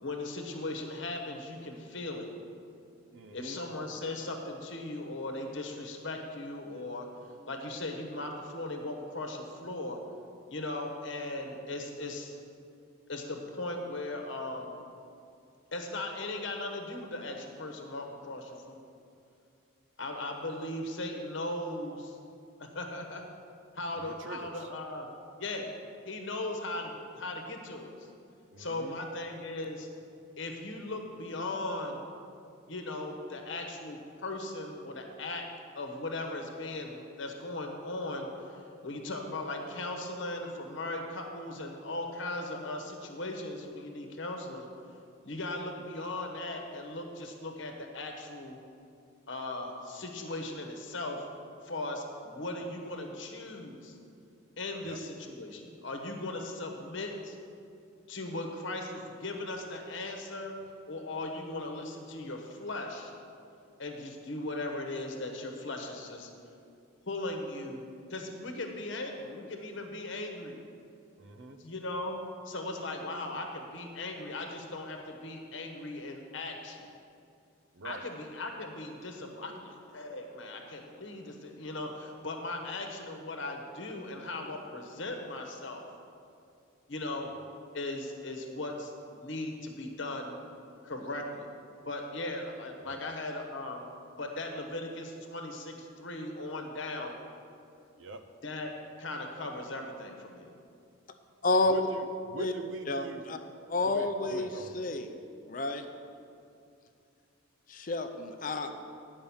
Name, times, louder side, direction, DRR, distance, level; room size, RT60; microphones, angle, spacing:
voice 1, 0.0-2.3 3.3-7.1 7.5-10.0 10.5-12.3 13.1-14.7 15.7-18.8 20.0-22.2 22.7-23.2 23.8-25.1 25.4-25.7 26.1-27.9 28.6-29.9 30.4-32.1 32.7-35.4 35.7-44.7 45.2-48.6 49.3-51.2 51.6-53.9 54.6-57.4 58.1-60.5 60.9-63.1 63.8-66.3 67.1-67.8 68.1-70.6 71.6-72.2 72.4-76.9 77.8-85.9 86.9-87.3 87.7-90.4 90.8-91.5 91.8-97.1 98.4-98.7 99.0-100.5, left 2 dB, 65° left, 3 dB, 1.1 m, -38 dB
voice 2, 3.1-3.6 24.0-24.5 28.5-29.0 54.8-55.0 71.2-71.6 77.8-78.0 92.8-93.0 98.0-98.2 101.7-103.2 103.8-104.7, right 2 dB, 65° right, 7 dB, 0.7 m, -42 dB
voice 3, 101.4-101.9 102.4-102.5 102.9-103.4 103.7-105.1 105.5-105.8 107.7-108.7, left 2 dB, 40° left, 7 dB, 0.5 m, -30 dB
10.5 x 5.3 x 7.1 m, 2.5 s
head